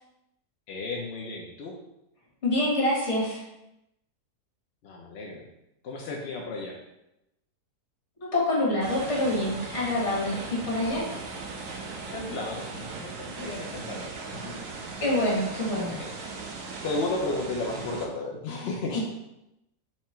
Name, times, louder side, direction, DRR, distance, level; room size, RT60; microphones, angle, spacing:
voice 1, 0.7-1.7 4.8-5.5 5.8-6.8 10.5-10.7 12.1-14.7 15.9-16.1 16.8-19.0, left 2 dB, 60° left, 0 dB, 0.7 m, -34 dB
voice 2, 2.4-3.4 8.3-11.1 15.0-16.0 18.9-19.0, left 1 dB, 45° left, -6 dB, 1.9 m, -26 dB
sound 1, 8.8-18.1, right 4 dB, 65° right, 0.9 m, -38 dB
4.4 x 2.8 x 4.2 m, 0.87 s
omnidirectional pair, 1.7 m